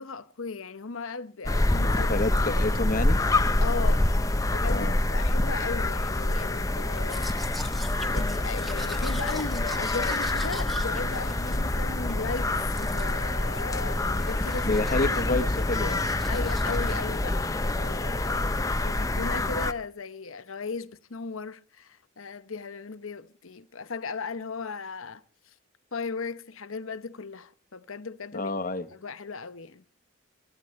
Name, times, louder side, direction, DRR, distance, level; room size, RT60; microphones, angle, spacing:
voice 1, 0.0-2.1 3.6-4.1 4.4-7.7 8.1-14.8 15.3-15.4 16.3-25.5 25.9-29.8, left 4 dB, 85° left, 0.9 m, -37 dB
sound 1, 1.4-19.7, left 2 dB, 15° left, 0.7 m, -26 dB
voice 2, 1.8-3.2 4.7-4.9 14.6-16.1 28.3-28.8, left 2 dB, 40° left, 1.1 m, -29 dB
Domestic sounds home sounds, 7.0-12.2 12.6-13.2 13.5-13.9 14.2-17.1, left 1 dB, ahead, 1.2 m, -42 dB
27.0 x 14.0 x 3.2 m
head